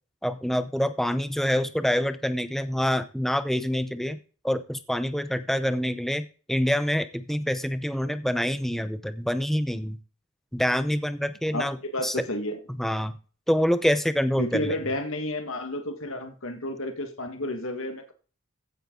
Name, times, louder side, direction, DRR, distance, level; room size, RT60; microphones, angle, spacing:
voice 1, 0.2-4.2 4.4-10.0 10.5-11.8 12.0-12.2 12.7-13.2 13.5-14.7, equal, ahead, 11 dB, 0.7 m, -26 dB
voice 2, 11.5-12.6 14.4-18.1, left 1 dB, 65° left, 6 dB, 1.8 m, -31 dB
15.5 x 8.0 x 3.9 m, 0.38 s
head